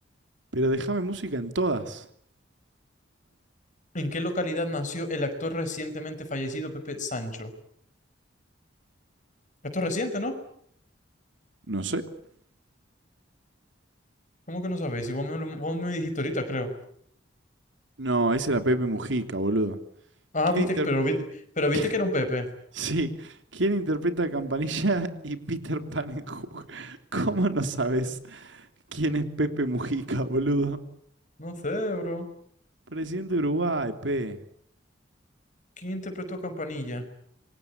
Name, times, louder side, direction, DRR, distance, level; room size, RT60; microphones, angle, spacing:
voice 1, 0.5-2.0 11.7-12.0 18.0-19.8 20.5-20.9 21.7-21.9 22.8-28.6 28.9-30.8 32.9-34.4, right 2 dB, 75° right, 8 dB, 3.2 m, -27 dB
voice 2, 3.9-7.5 9.7-10.4 14.5-16.7 20.3-21.2 21.6-22.5 31.4-32.3 35.8-37.0, left 1 dB, 40° left, 8 dB, 5.6 m, -29 dB
27.5 x 24.5 x 8.6 m, 0.67 s
head